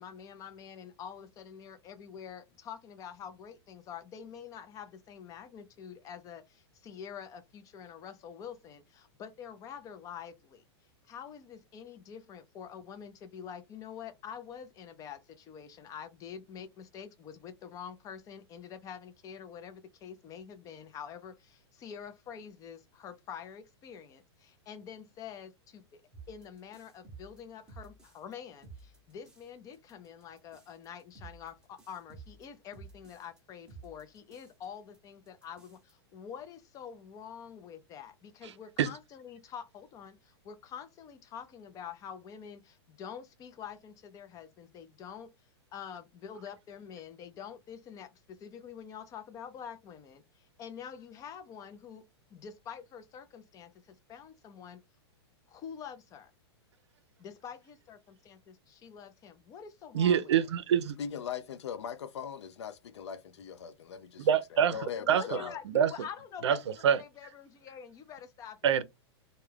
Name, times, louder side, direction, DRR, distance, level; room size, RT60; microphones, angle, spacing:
voice 1, 0.0-10.6 11.0-26.0 26.3-45.3 45.7-52.0 52.3-54.8 55.5-56.3 57.2-60.3 65.0-68.8, left 8 dB, 25° left, 0.4 m, -46 dB
sound 1, 26.1-28.3 28.6-29.5 29.7-33.4 33.7-34.6 34.9-35.0 35.3-35.9, right 4 dB, 5° right, 0.8 m, -52 dB
voice 2, 59.9-61.0 64.3-64.7 65.1-65.4 65.7-65.9 66.4-66.6 66.8-67.0 68.6-68.8, right 8 dB, 85° right, 0.5 m, -25 dB
voice 3, 61.0-64.2 64.5-65.6, left 7 dB, 85° left, 0.5 m, -40 dB
2.2 x 2.2 x 3.2 m
hypercardioid pair, 135°, 14 cm